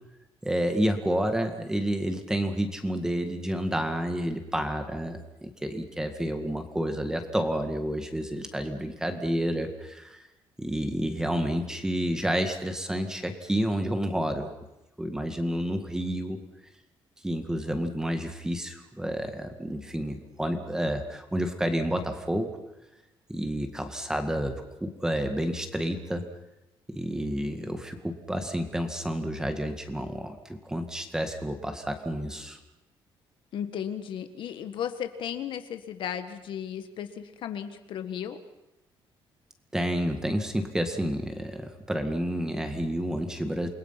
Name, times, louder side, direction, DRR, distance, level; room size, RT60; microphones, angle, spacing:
voice 1, 0.4-10.2 10.6-14.5 15.0-16.4 17.2-22.5 23.3-26.2 26.9-30.4 30.6-32.6 39.7-43.7, equal, 5° right, 6 dB, 2.0 m, -30 dB
voice 2, 33.5-38.4, left 9 dB, 65° left, 9 dB, 1.6 m, -35 dB
28.5 x 21.0 x 5.9 m, 0.96 s
cardioid pair, 165°, 9 cm